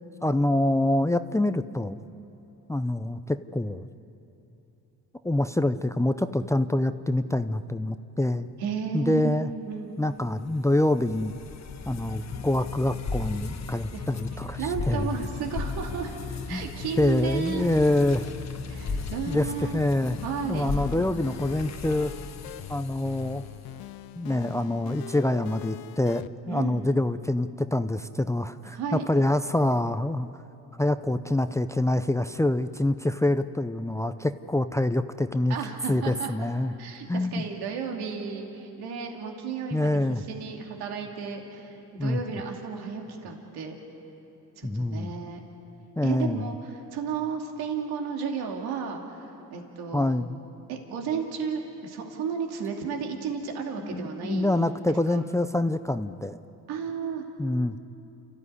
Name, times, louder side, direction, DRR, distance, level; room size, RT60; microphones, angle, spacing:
voice 1, 0.2-2.0 2.7-3.9 5.2-8.5 8.9-9.5 10.0-11.4 11.9-15.1 16.5-16.6 17.0-18.3 19.3-20.2 20.5-22.1 22.7-23.4 24.2-30.3 30.8-35.6 35.9-36.7 37.1-37.4 39.7-40.2 42.0-42.2 44.6-45.1 46.0-46.5 49.9-50.4 53.8-56.4 57.4-57.8, left 1 dB, 10° left, 11 dB, 0.6 m, -26 dB
voice 2, 8.6-10.0 13.9-14.0 14.6-16.1 16.5-17.7 18.7-19.8 20.2-20.7 26.5-26.9 28.7-29.1 35.5-36.3 36.8-43.8 44.6-45.4 46.0-50.2 50.7-54.6 55.1-55.2 56.7-57.2, right 6 dB, 85° right, 2 dB, 2.7 m, -33 dB
sound 1, 10.3-23.7, left 4 dB, 45° left, 1.4 m, -36 dB
sound 2, 18.9-26.3, left 13 dB, 70° left, 0.8 m, -43 dB
29.5 x 14.5 x 9.8 m, 3.0 s
cardioid pair, 85°, 37 cm